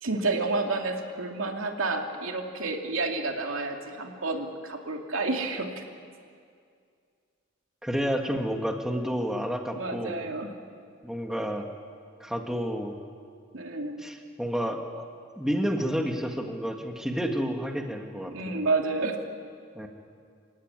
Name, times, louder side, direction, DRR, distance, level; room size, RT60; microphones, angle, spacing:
voice 1, 0.0-5.8 9.8-10.5 13.5-14.1 18.3-19.2, right 3 dB, 90° right, 2 dB, 2.7 m, -30 dB
voice 2, 7.8-10.1 11.0-11.7 12.2-12.9 14.0-15.1 15.4-18.6 19.8-19.9, equal, 5° right, 3 dB, 1.8 m, -30 dB
27.5 x 16.5 x 9.7 m, 2.2 s
head